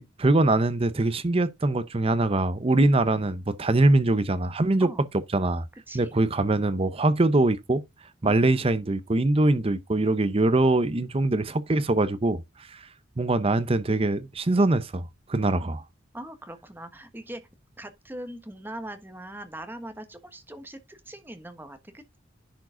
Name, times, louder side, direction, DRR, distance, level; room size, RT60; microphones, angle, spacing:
voice 1, 0.0-4.9 5.3-5.7 5.9-7.8 8.2-12.4 12.7-12.8 13.2-15.8, right 2 dB, 30° right, 0.7 m, -23 dB
voice 2, 8.2-8.6 16.1-17.4 17.8-22.2, right 1 dB, 10° right, 1.2 m, -41 dB
10.5 x 4.8 x 3.8 m
head